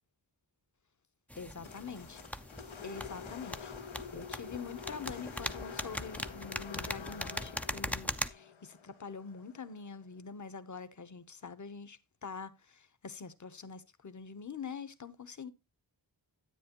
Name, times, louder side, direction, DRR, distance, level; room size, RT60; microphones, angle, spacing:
sound 1, 1.3-8.3, left 1 dB, 5° left, 0.4 m, -40 dB
voice 1, 1.4-2.2 2.8-3.7 4.1-15.5, left 5 dB, 40° left, 0.9 m, -45 dB
sound 2, 1.6-9.9, left 6 dB, 85° left, 1.0 m, -47 dB
10.5 x 9.0 x 2.9 m
wide cardioid pair, 90°, 46 cm